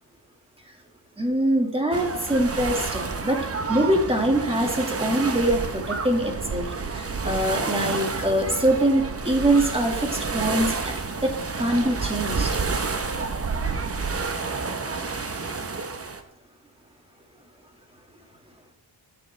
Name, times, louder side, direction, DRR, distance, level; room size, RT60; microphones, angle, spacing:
voice 1, 1.2-6.7 6.9-10.9 11.2-12.6, right 1 dB, 10° right, 1 dB, 1.8 m, -24 dB
sound 1, 1.9-16.2, right 4 dB, 30° right, 0.9 m, -29 dB
18.5 x 6.8 x 3.3 m, 0.76 s
wide cardioid pair, 155°, 47 cm